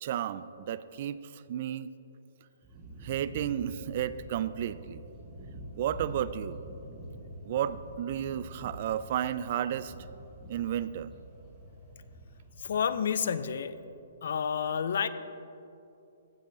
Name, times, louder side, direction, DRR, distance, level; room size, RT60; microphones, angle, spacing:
voice 1, 0.0-1.9 3.0-5.0 5.7-6.6 7.4-9.9 10.5-11.1, right 10 dB, 45° right, 16 dB, 0.3 m, -32 dB
sound 1, 2.6-12.8, right 1 dB, 15° right, 2.2 m, -46 dB
voice 2, 12.6-13.7 14.2-15.1, left 7 dB, 65° left, 14 dB, 0.5 m, -29 dB
15.5 x 7.8 x 3.9 m, 2.9 s
hypercardioid pair, 160°, 0 cm